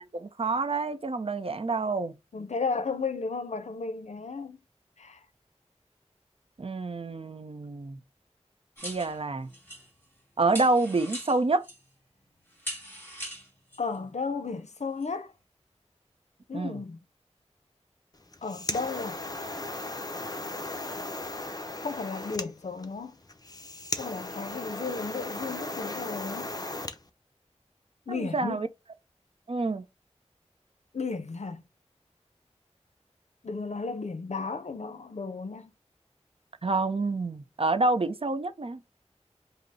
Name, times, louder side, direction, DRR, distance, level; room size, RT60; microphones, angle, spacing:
voice 1, 0.0-2.1 6.6-8.0 8.8-9.5 10.4-11.7 16.5-16.8 28.1-28.7 29.5-29.8 36.6-38.8, right 3 dB, 55° right, 0.5 m, -28 dB
voice 2, 2.3-4.6 5.0-5.2 13.8-15.3 16.5-17.0 18.4-19.2 21.8-23.2 24.0-26.5 28.1-28.6 30.9-31.6 33.4-35.7, left 4 dB, 75° left, 0.6 m, -34 dB
sound 1, 8.8-10.2 10.5-11.9 12.5-14.0 15.0-15.1, equal, 20° left, 1.7 m, -41 dB
sound 2, 18.2-27.0, left 2 dB, 35° left, 0.7 m, -36 dB
5.2 x 2.0 x 4.0 m
wide cardioid pair, 60°, 12 cm